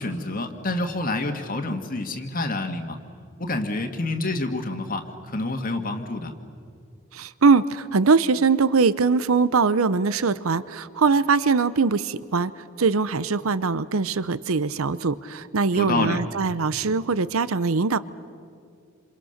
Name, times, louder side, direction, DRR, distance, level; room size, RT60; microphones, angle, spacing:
voice 1, 0.0-3.0 3.4-6.3 15.7-16.2, left 2 dB, 40° left, 5 dB, 1.8 m, -28 dB
voice 2, 7.1-12.5 12.8-18.0, right 4 dB, 80° right, 16 dB, 0.7 m, -22 dB
28.0 x 28.0 x 6.6 m, 2.3 s
head